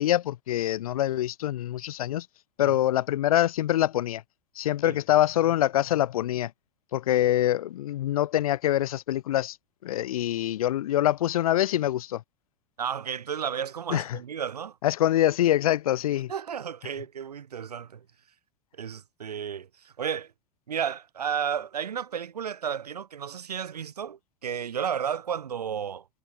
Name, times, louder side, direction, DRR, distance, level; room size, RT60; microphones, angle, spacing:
voice 1, 0.0-2.3 2.6-4.2 4.6-6.5 6.9-9.6 9.8-12.2 13.9-14.2 14.8-16.3, left 13 dB, 65° left, 0.4 m, -25 dB
voice 2, 12.8-14.8 16.3-18.1 18.7-20.3 20.7-26.1, right 8 dB, 80° right, 0.4 m, -33 dB
figure-of-eight pair, 85°, 20 cm